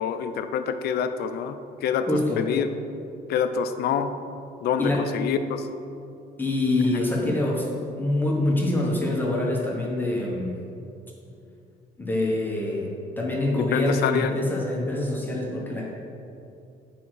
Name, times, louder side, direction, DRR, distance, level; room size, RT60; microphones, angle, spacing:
voice 1, 0.0-2.1 2.4-2.7 3.3-4.1 4.6-5.6 13.5-14.3, left 7 dB, 70° left, 9 dB, 0.6 m, -26 dB
voice 2, 2.1-2.5 4.8-5.1 6.4-10.5 12.0-15.9, left 1 dB, 10° left, -4 dB, 1.5 m, -25 dB
8.5 x 5.0 x 6.3 m, 2.6 s
cardioid pair, 110°, 17 cm